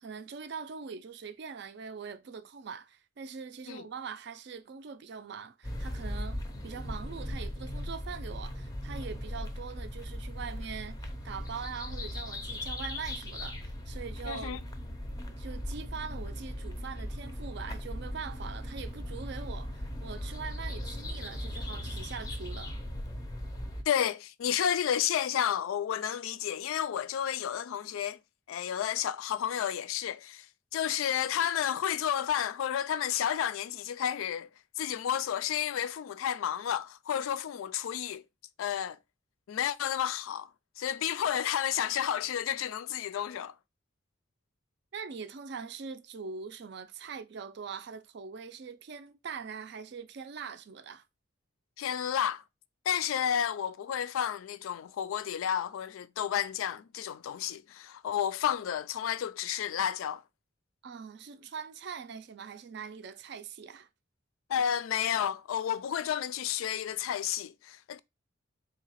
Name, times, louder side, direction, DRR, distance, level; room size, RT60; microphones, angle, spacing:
voice 1, 0.0-14.6 15.4-22.8 44.9-51.0 60.8-63.9, right 6 dB, 55° right, 0.4 m, -42 dB
sound 1, 5.6-23.8, left 1 dB, 20° left, 0.4 m, -38 dB
voice 2, 14.3-14.6 23.9-28.2 28.5-30.5 30.7-34.5 34.8-38.2 38.6-39.0 39.5-40.5 40.8-43.5 51.8-52.4 52.9-60.2 64.5-68.0, left 9 dB, 90° left, 0.3 m, -31 dB
3.8 x 2.8 x 2.8 m
head